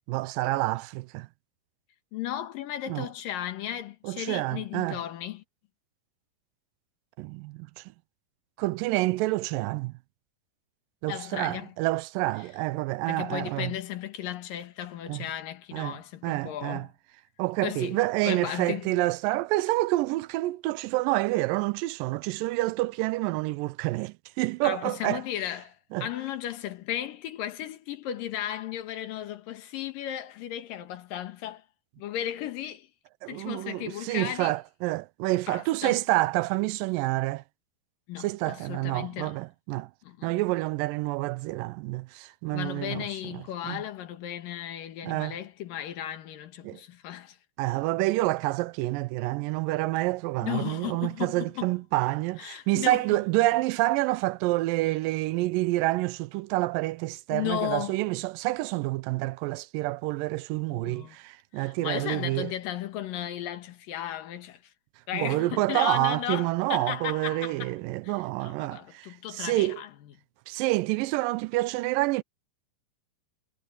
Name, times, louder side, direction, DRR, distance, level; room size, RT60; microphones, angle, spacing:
voice 1, 0.1-1.3 2.9-3.1 4.0-5.0 7.2-7.7 8.6-9.9 11.0-13.7 15.1-15.3 15.7-16.9 17.4-25.2 25.9-26.1 33.2-37.4 38.2-39.9 40.2-43.4 43.6-43.8 45.0-45.4 46.6-46.8 47.6-62.5 65.1-69.8 70.5-72.2, right 19 dB, 90° right, 2.3 m, -28 dB
voice 2, 2.1-5.4 11.1-11.7 13.1-16.9 17.6-18.0 18.3-18.9 24.6-31.6 32.0-32.9 33.3-34.5 35.5-36.0 38.1-39.4 40.0-40.3 42.5-47.4 50.4-51.7 52.4-53.0 54.9-55.0 57.3-58.0 60.7-61.2 61.6-64.6 65.1-67.7 68.0-69.9, left 11 dB, 85° left, 3.2 m, -35 dB
omnidirectional pair, 3.9 m